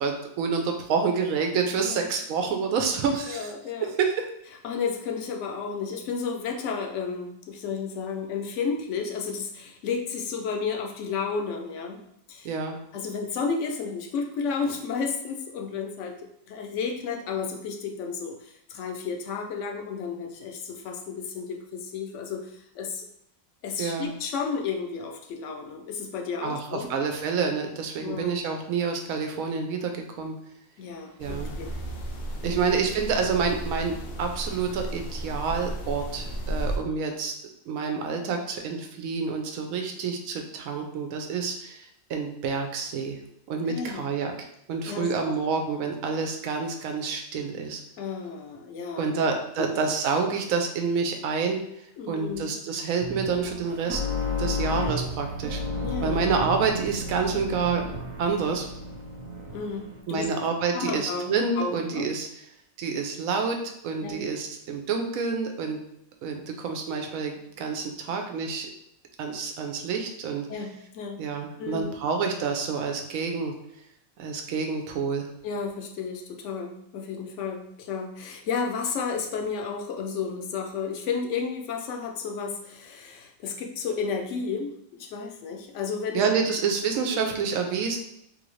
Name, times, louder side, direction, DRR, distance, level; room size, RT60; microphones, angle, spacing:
voice 1, 0.0-3.5 4.0-4.2 12.4-12.8 23.8-24.1 26.4-30.3 31.2-31.5 32.4-37.3 37.7-43.2 43.5-44.3 44.7-47.8 49.0-51.6 52.1-54.0 54.4-55.6 56.0-57.8 58.2-58.7 60.1-62.3 62.8-63.6 63.8-65.8 66.2-68.7 69.2-70.5 71.2-73.5 74.2-75.3 86.1-88.0, right 5 dB, 80° right, 3 dB, 1.0 m, -28 dB
voice 2, 3.1-3.9 4.6-12.0 12.3-12.5 12.9-23.1 23.6-26.9 28.0-28.4 30.8-31.8 32.4-32.7 43.7-44.0 44.9-45.3 48.0-49.2 49.6-49.9 52.0-52.6 55.8-56.3 56.5-56.6 59.5-60.3 60.7-62.1 64.0-64.2 70.5-71.3 71.6-71.9 75.4-86.3 87.1-87.3, left 5 dB, 70° left, 2 dB, 0.8 m, -32 dB
sound 1, 31.2-36.8, right 1 dB, 85° left, 1.1 m, -34 dB
sound 2, 53.0-60.0, left 2 dB, 45° right, 0.5 m, -32 dB
3.4 x 2.5 x 3.1 m, 0.77 s
omnidirectional pair, 1.4 m